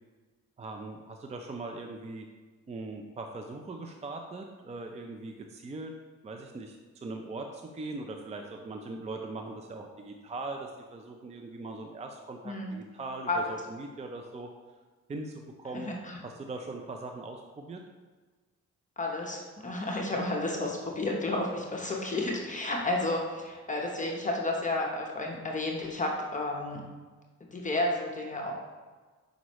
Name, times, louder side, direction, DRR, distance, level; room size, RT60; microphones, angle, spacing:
voice 1, 0.6-2.3 2.7-5.9 6.2-14.5 15.1-15.9 16.2-17.8, right 2 dB, 20° right, 3 dB, 0.5 m, -40 dB
voice 2, 15.7-16.2 19.0-26.8 27.5-28.5, left 2 dB, 25° left, -1 dB, 0.9 m, -31 dB
6.2 x 5.2 x 3.0 m, 1.4 s
cardioid pair, 90°, 30 cm